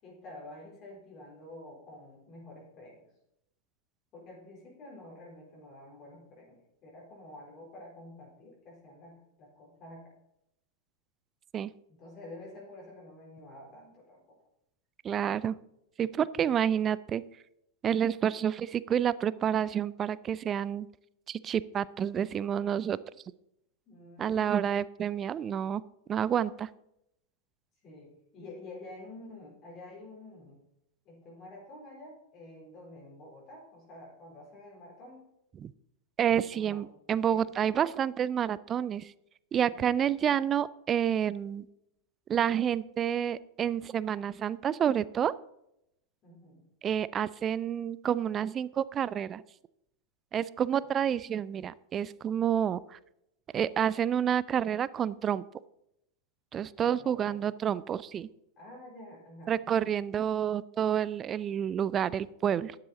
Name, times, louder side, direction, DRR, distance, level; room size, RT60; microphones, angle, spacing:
voice 1, 0.0-3.0 4.1-10.1 11.9-14.4 16.4-16.6 23.9-24.6 27.8-30.6 31.1-35.3 36.5-36.8 37.3-37.4 39.7-39.9 46.2-46.7 56.8-57.4 58.6-59.6, left 2 dB, 35° left, -3 dB, 3.9 m, -49 dB
voice 2, 15.0-15.6 16.0-17.2 17.8-20.9 21.3-23.0 24.2-25.8 26.1-26.7 35.6-35.7 36.2-39.1 39.5-41.7 42.3-45.3 46.8-49.4 50.3-53.0 53.5-55.4 56.5-58.3 59.5-62.8, right 9 dB, 25° right, 19 dB, 0.4 m, -29 dB
12.5 x 9.8 x 4.0 m, 0.81 s
figure-of-eight pair, 90°, 0 cm